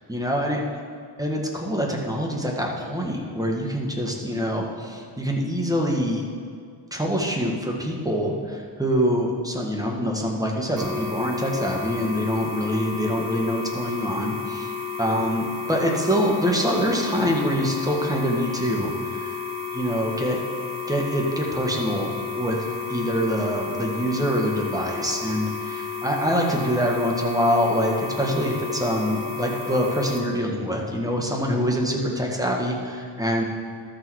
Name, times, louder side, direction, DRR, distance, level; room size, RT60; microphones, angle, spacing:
voice 1, 0.1-0.6 1.2-6.2 6.9-14.7 15.0-19.4 19.7-20.4 20.9-22.6 22.9-33.4, equal, 10° right, -1 dB, 1.7 m, -25 dB
sound 1, 10.8-30.2, left 5 dB, 45° right, 1.7 m, -32 dB
13.0 x 6.6 x 4.7 m, 2.3 s
wide cardioid pair, 80°, 46 cm